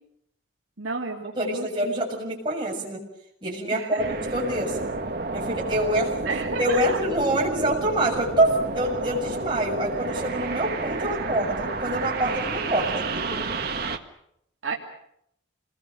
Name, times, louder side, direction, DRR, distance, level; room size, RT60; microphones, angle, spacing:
voice 1, 0.8-1.7 3.7-4.1 6.2-7.0 12.9-13.6 14.6-14.7, right 4 dB, 75° right, -1 dB, 2.8 m, -32 dB
voice 2, 1.3-3.0 3.4-4.8 5.3-6.2 6.6-13.0, right 1 dB, 25° right, -3 dB, 7.2 m, -26 dB
sound 1, 4.0-14.0, right 3 dB, 50° right, 1.6 m, -30 dB
28.0 x 21.0 x 6.6 m, 0.74 s
head